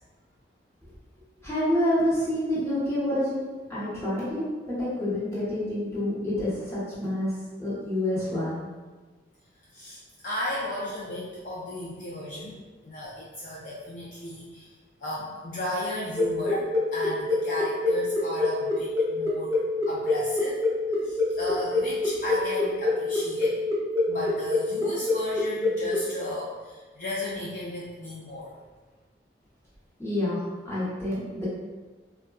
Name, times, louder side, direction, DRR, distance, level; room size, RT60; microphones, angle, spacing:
voice 1, 1.4-7.3 7.6-8.7 30.0-31.5, left 1 dB, 15° left, -9 dB, 0.8 m, -28 dB
voice 2, 9.7-14.7 15.0-20.6 20.9-23.5 24.1-28.5, left 1 dB, 45° left, -6 dB, 0.4 m, -35 dB
sound 1, 16.2-26.0, left 3 dB, 15° right, 0.6 m, -26 dB
3.6 x 2.2 x 2.2 m, 1.3 s
head